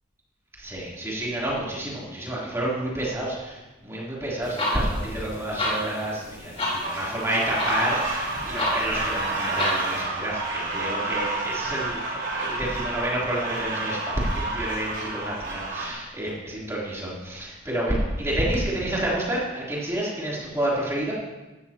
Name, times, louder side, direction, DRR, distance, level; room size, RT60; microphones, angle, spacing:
voice 1, 0.6-21.1, right 1 dB, 15° right, -6 dB, 3.4 m, -29 dB
sound 1, 4.4-10.0, left 1 dB, 30° left, 3.8 m, -31 dB
sound 2, 6.8-15.9, right 2 dB, 65° right, 3.8 m, -30 dB
16.5 x 13.5 x 3.0 m, 1.1 s
head